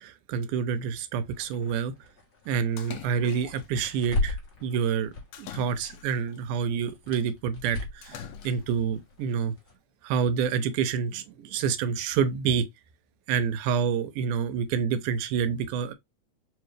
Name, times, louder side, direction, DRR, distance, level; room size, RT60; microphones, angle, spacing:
voice 1, 0.0-1.9 2.5-9.6 10.0-12.7 13.3-15.9, right 7 dB, 85° right, 2.2 m, -28 dB
sound 1, 1.3-6.0 6.3-9.7, left 3 dB, 45° left, 1.3 m, -37 dB
Splash splatter, 2.8-3.8 5.3-6.4 8.0-8.8, left 9 dB, 75° left, 1.5 m, -43 dB
4.9 x 2.3 x 3.2 m
omnidirectional pair, 3.6 m